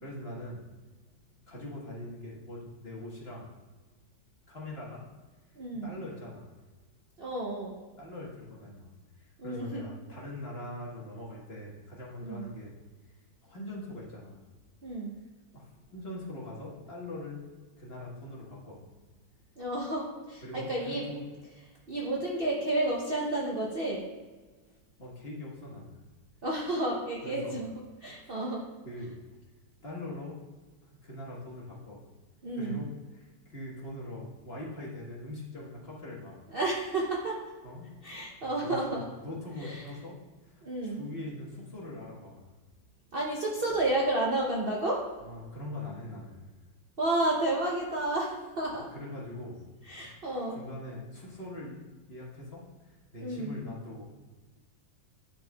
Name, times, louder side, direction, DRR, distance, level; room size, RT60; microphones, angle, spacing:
voice 1, 0.0-0.6 1.5-3.5 4.5-5.0 5.8-6.5 8.0-8.9 9.2-12.7 13.4-14.5 15.5-17.4 17.8-18.9 20.4-21.2 25.0-26.0 27.2-27.6 28.8-29.2 29.8-30.4 30.9-32.0 32.5-36.4 37.6-37.9 38.4-38.9 39.2-40.1 40.4-42.5 45.2-46.4 48.9-49.6 49.9-50.1 50.5-51.8 52.1-54.0, left 1 dB, 35° left, -5 dB, 1.4 m, -42 dB
voice 2, 5.6-5.9 7.2-7.7 9.4-9.8 12.2-12.5 14.8-15.1 19.6-21.0 21.9-24.0 26.4-27.7 28.0-28.6 32.4-32.8 36.5-37.4 38.0-39.1 39.6-39.8 40.6-41.0 43.1-45.0 47.0-48.9 49.9-50.6 53.2-53.6, right 2 dB, 60° right, -3 dB, 0.6 m, -31 dB
10.5 x 4.4 x 2.3 m, 1.3 s
omnidirectional pair, 2.0 m